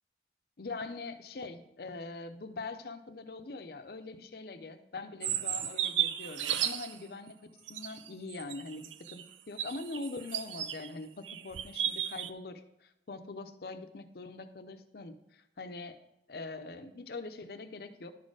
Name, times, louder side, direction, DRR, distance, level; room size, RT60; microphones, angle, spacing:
voice 1, 0.6-16.0 16.3-18.1, left 3 dB, 55° left, 9 dB, 0.6 m, -43 dB
sound 1, 5.2-7.0 7.7-10.9 11.2-12.3, right 10 dB, 90° right, 0.4 m, -34 dB
11.0 x 4.3 x 4.8 m, 0.85 s
head